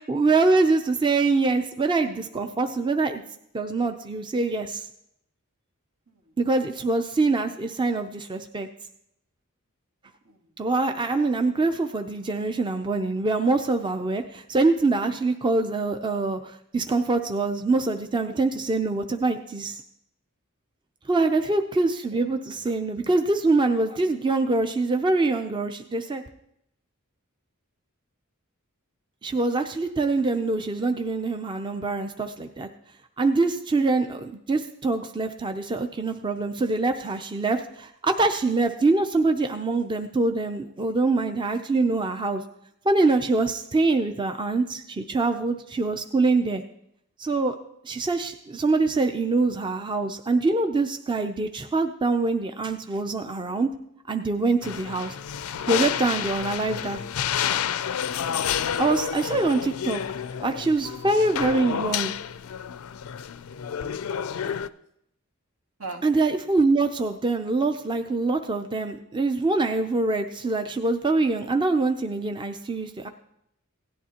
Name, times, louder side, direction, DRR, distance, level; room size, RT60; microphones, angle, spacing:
voice 1, 0.1-3.2 3.5-4.9 6.4-8.7 10.6-19.8 21.1-26.2 29.2-32.7 33.2-42.4 42.8-46.6 47.2-47.5 47.8-53.7 54.1-55.2 55.7-57.0 58.8-60.0 60.4-62.1 66.0-73.1, right 3 dB, 20° right, 6 dB, 0.5 m, -24 dB
voice 2, 21.1-21.5 22.1-22.2 54.7-55.1 58.4-58.9 60.3-60.7 63.5-64.6 65.8-66.0, right 2 dB, 80° right, 1 dB, 1.8 m, -45 dB
sound 1, 54.6-64.7, left 8 dB, 80° left, 0.4 m, -30 dB
17.0 x 11.0 x 2.9 m, 0.75 s
head